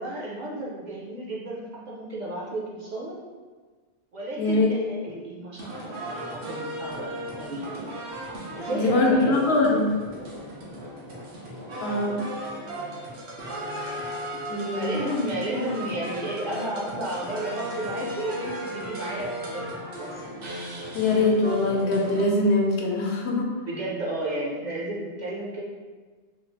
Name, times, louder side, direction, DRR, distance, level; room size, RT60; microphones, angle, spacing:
voice 1, 0.0-3.2 4.1-7.9 8.5-9.5 14.7-20.2 23.7-25.6, right 1 dB, 55° right, -4 dB, 0.6 m, -32 dB
voice 2, 4.4-4.8 8.7-9.9 11.8-12.2 14.5-15.0 20.9-23.5, left 2 dB, 80° left, -1 dB, 0.9 m, -22 dB
sound 1, 5.5-22.3, right 1 dB, 85° right, 1.0 m, -36 dB
3.1 x 2.4 x 3.3 m, 1.4 s
omnidirectional pair, 1.1 m